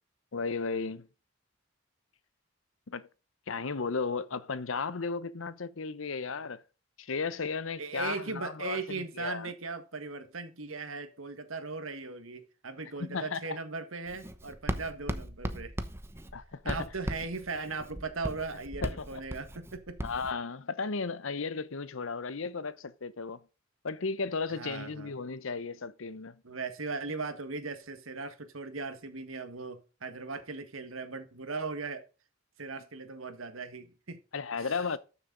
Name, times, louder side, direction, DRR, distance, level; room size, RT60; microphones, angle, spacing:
voice 1, 0.3-1.1 2.9-3.1 3.5-6.6 7.0-9.5 13.0-13.6 16.3-16.8 18.8-19.2 20.0-23.4 23.8-26.4 34.3-35.0, left 4 dB, 75° left, 0.8 m, -35 dB
voice 2, 7.8-15.8 16.6-20.0 24.5-25.1 26.4-32.0 32.6-34.2, right 4 dB, 85° right, 1.7 m, -38 dB
Writing, 14.1-20.3, right 1 dB, 10° right, 0.8 m, -38 dB
13.0 x 6.8 x 3.9 m
head